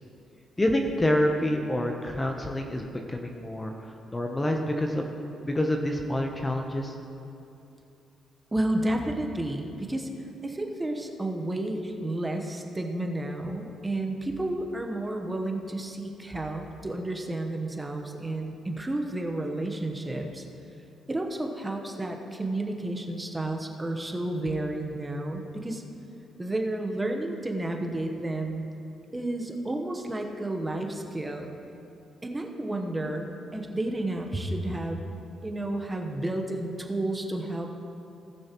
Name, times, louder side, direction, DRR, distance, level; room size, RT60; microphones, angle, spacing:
voice 1, 0.6-5.1 5.4-6.9, left 1 dB, 15° left, 3 dB, 0.8 m, -27 dB
voice 2, 8.5-10.1 10.4-20.4 21.1-25.8 26.4-28.7 29.1-31.6 32.2-35.1 35.4-37.8, right 1 dB, 15° right, 3 dB, 1.0 m, -31 dB
19.0 x 6.3 x 3.0 m, 2.8 s
cardioid pair, 90°, 0 cm